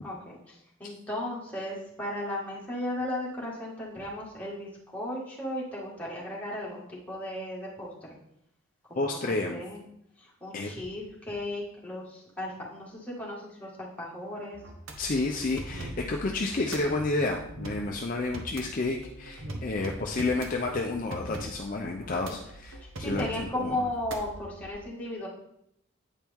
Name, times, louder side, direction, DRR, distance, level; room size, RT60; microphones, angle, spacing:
voice 1, 0.0-7.9 8.9-9.8 10.2-14.6 22.8-25.3, left 1 dB, 10° left, -6 dB, 1.8 m, -36 dB
voice 2, 9.0-9.6 10.5-10.7 15.0-23.8, left 2 dB, 40° left, 1 dB, 0.5 m, -30 dB
sound 1, 14.5-24.7, right 1 dB, 75° right, 1.0 m, -42 dB
8.9 x 4.5 x 3.5 m, 0.76 s
head